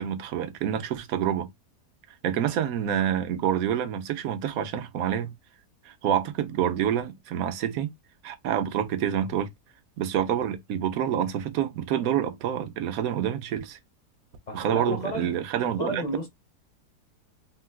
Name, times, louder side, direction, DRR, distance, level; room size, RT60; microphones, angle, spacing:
voice 1, 0.0-1.5 2.2-5.4 5.9-7.9 8.2-9.5 10.0-13.8 14.5-16.0, right 10 dB, 70° right, 1.0 m, -27 dB
voice 2, 14.5-16.3, equal, 45° left, 0.5 m, -33 dB
3.8 x 2.2 x 2.2 m
omnidirectional pair, 1.7 m